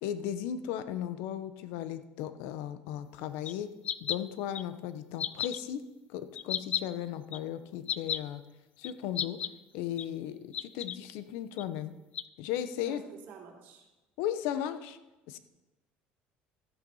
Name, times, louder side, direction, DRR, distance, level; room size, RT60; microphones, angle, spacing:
voice 1, 0.0-3.7 4.0-5.8 6.1-8.4 8.8-9.4 9.7-11.9 12.4-13.0 14.2-15.0 15.3-15.4, left 10 dB, 85° left, 12 dB, 0.9 m, -36 dB
sound 1, 3.5-3.6 3.8-4.2 4.6-4.7 5.2-5.6 6.4-6.8 7.3-7.4 7.9-8.2 8.8-8.9 9.2-9.5 10.0-10.1 10.5-11.0 11.6-11.7 12.1-12.2, left 10 dB, 40° left, 0.4 m, -32 dB
voice 2, 12.8-13.9, right 6 dB, 60° right, 1 dB, 2.9 m, -49 dB
13.0 x 9.2 x 5.6 m, 1.1 s
cardioid pair, 145°, 4 cm